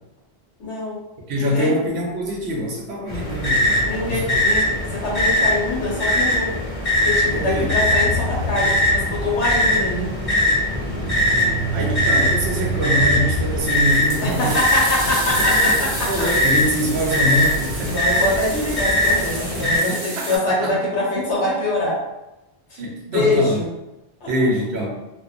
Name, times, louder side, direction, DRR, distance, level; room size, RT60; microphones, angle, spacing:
voice 1, 0.6-1.0 1.4-1.8 3.8-6.5 7.0-10.1 14.2-16.3 17.8-22.0 22.7-22.8 23.1-23.6 24.2-24.3, left 2 dB, 85° left, -4 dB, 1.2 m, -24 dB
voice 2, 1.3-4.4 7.3-7.7 11.7-14.6 15.3-15.8 16.1-18.0 19.6-20.7 22.8-23.6 24.3-25.0, equal, 75° right, -1 dB, 0.9 m, -24 dB
sound 1, 3.1-19.8, left 1 dB, 35° left, 0.8 m, -21 dB
sound 2, 6.9-13.6, right 1 dB, 55° left, 1.1 m, -29 dB
sound 3, 13.7-20.4, right 2 dB, 50° right, 0.6 m, -31 dB
2.5 x 2.1 x 2.4 m, 0.97 s
omnidirectional pair, 1.1 m